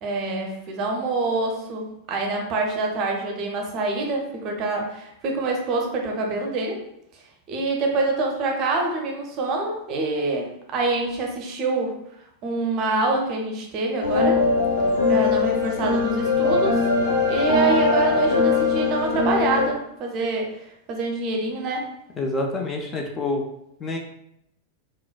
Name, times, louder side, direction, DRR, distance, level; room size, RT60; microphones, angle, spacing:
voice 1, 0.0-6.8 7.5-12.0 12.4-14.4 15.1-16.8 17.3-20.5 20.9-21.9, right 2 dB, 35° right, 1 dB, 0.6 m, -25 dB
sound 1, 14.0-19.6, left 4 dB, 70° left, 0.9 m, -21 dB
voice 2, 22.2-23.4 23.8-24.0, left 2 dB, 20° left, 2 dB, 0.4 m, -27 dB
3.8 x 2.1 x 2.2 m, 0.78 s
figure-of-eight pair, 90°, 0 cm